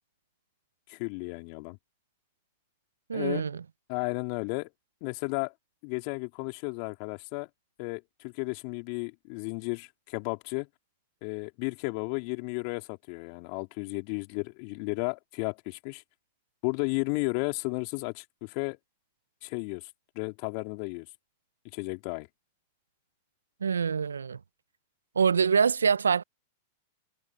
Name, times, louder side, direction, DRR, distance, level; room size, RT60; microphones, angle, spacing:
voice 1, 0.9-1.8 3.1-3.4 3.9-4.7 5.0-5.5 5.8-7.5 7.8-10.7 11.2-16.0 16.6-18.8 19.4-19.9 20.2-21.1 21.7-22.3, left 34 dB, 50° left, 3.7 m, -33 dB
voice 2, 3.1-3.6 23.6-24.4 25.2-26.2, right 6 dB, 85° right, 0.4 m, -25 dB
hypercardioid pair, 100°, 0 cm